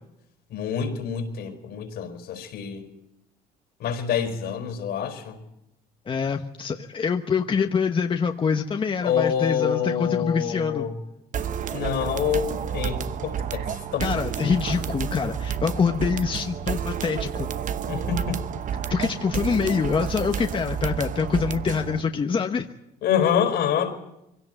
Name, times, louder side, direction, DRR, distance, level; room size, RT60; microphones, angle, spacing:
voice 1, 0.5-2.9 3.8-5.4 9.0-10.9 11.7-13.6 13.9-14.1 17.9-18.4 23.0-23.9, left 8 dB, 70° left, 6 dB, 4.2 m, -26 dB
voice 2, 6.1-10.9 14.0-17.5 18.9-22.7, left 5 dB, 30° left, 4 dB, 1.1 m, -25 dB
sound 1, 11.3-22.0, right 8 dB, 50° right, 1.0 m, -30 dB
23.0 x 17.0 x 9.1 m, 0.89 s
cardioid pair, 110°, 17 cm